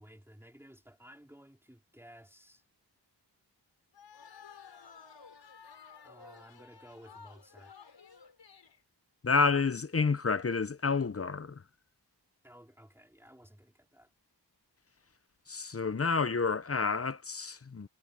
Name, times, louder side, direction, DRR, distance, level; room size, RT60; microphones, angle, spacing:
voice 1, 0.0-2.6 6.0-7.8 12.4-14.1, equal, 5° right, 3.8 m, -55 dB
sound 1, 3.9-8.8, left 6 dB, 85° left, 4.4 m, -54 dB
voice 2, 9.2-11.6 15.5-17.9, left 4 dB, 35° left, 0.8 m, -29 dB
wide cardioid pair, 70°, 42 cm